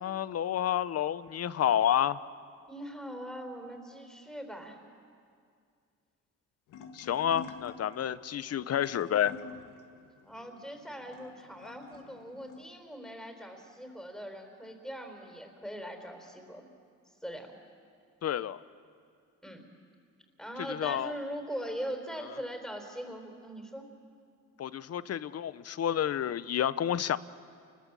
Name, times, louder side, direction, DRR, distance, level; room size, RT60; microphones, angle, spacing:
voice 1, 0.0-2.2 6.9-9.3 18.2-18.6 20.7-21.1 24.6-27.2, left 10 dB, 55° left, 16 dB, 0.8 m, -29 dB
voice 2, 2.7-4.8 10.2-16.7 17.2-17.5 19.4-19.6 20.4-23.9, equal, ahead, 4 dB, 4.5 m, -41 dB
sound 1, 6.7-12.6, left 6 dB, 85° left, 1.7 m, -49 dB
28.5 x 21.0 x 7.6 m, 2.2 s
cardioid pair, 90°, 30 cm